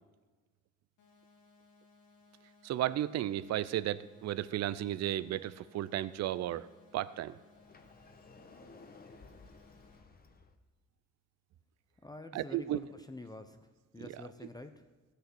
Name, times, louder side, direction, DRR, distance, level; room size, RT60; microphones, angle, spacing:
sound 1, 1.0-10.0, left 3 dB, 75° left, 2.9 m, -64 dB
voice 1, 2.6-6.7 6.9-7.4 12.3-12.8, right 13 dB, 60° right, 16 dB, 0.5 m, -34 dB
Sliding door, 7.5-10.5, left 3 dB, 30° left, 1.1 m, -56 dB
voice 2, 12.0-13.6 13.9-14.8, left 2 dB, 15° left, 8 dB, 0.7 m, -47 dB
14.5 x 6.7 x 6.2 m, 1.3 s
cardioid pair, 90°, 30 cm